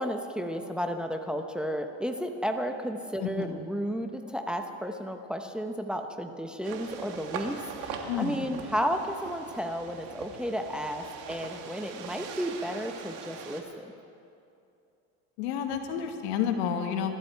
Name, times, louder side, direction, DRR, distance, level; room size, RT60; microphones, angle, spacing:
voice 1, 0.0-13.9, equal, 5° right, 5 dB, 0.9 m, -33 dB
voice 2, 3.2-3.6 8.1-8.5 15.4-17.1, left 8 dB, 90° left, 5 dB, 1.7 m, -30 dB
sound 1, 6.6-13.6, right 6 dB, 70° right, 2.0 m, -41 dB
24.5 x 12.5 x 4.6 m, 2.6 s
cardioid pair, 120°, 32 cm